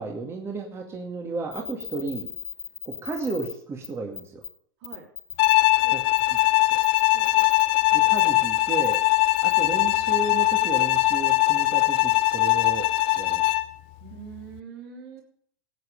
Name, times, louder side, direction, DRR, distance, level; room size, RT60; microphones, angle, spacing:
voice 1, 0.0-2.3 2.8-4.4 5.9-6.0 6.7-6.8 7.9-9.0 9.4-12.9 13.2-13.4, right 3 dB, 20° right, 1 dB, 2.2 m, -33 dB
sound 1, 1.5-3.5 3.8-3.9 4.1-4.5 4.8-5.5 6.2-6.4 6.8-7.6 8.2-8.3 8.8-9.0 9.4-9.5, left 8 dB, 85° left, 2.4 m, -37 dB
Bowed string instrument, 5.4-13.8, left 19 dB, 45° left, 0.7 m, -21 dB
voice 2, 7.1-7.5 14.0-15.2, right 6 dB, 60° right, 0 dB, 4.1 m, -43 dB
18.5 x 8.3 x 5.4 m, 0.63 s
hypercardioid pair, 105°, 13 cm